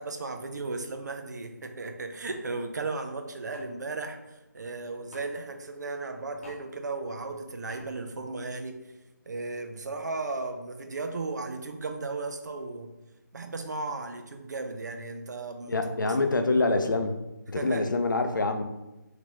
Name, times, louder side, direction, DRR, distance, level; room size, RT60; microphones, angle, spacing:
voice 1, 0.0-8.8 9.3-12.9 13.3-16.2 17.6-17.8, right 3 dB, 65° right, 5 dB, 0.5 m, -35 dB
sound 1, 2.3-2.5 3.5-3.7 5.1-5.3 6.4-6.6 7.7-7.8, equal, 40° left, 0.8 m, -47 dB
voice 2, 15.7-17.2 17.5-18.7, left 3 dB, 85° left, 7 dB, 0.5 m, -26 dB
3.6 x 2.8 x 3.0 m, 0.99 s
figure-of-eight pair, 165°, 10 cm